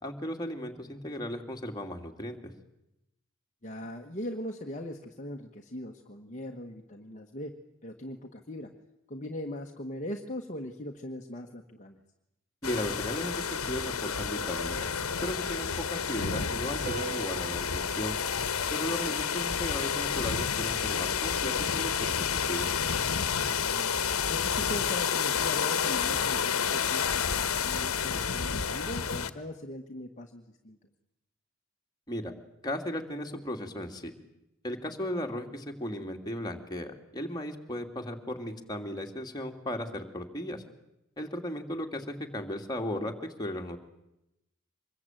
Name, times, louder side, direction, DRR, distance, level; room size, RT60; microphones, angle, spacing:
voice 1, 0.0-2.5 12.6-14.9 15.2-18.2 18.7-22.7 32.1-32.3 32.6-34.1 34.6-40.6 41.2-43.8, left 1 dB, 20° left, 2 dB, 2.6 m, -36 dB
voice 2, 3.6-7.5 7.8-8.7 9.1-12.0 19.1-19.2 23.5-23.9 24.3-30.8 35.0-35.1, left 1 dB, 35° left, 2 dB, 1.4 m, -40 dB
sound 1, 12.6-29.3, left 7 dB, 80° left, 1.4 m, -30 dB
sound 2, 14.4-16.1 16.9-19.5, right 6 dB, 40° right, 4.2 m, -45 dB
25.5 x 21.5 x 9.2 m, 0.88 s
head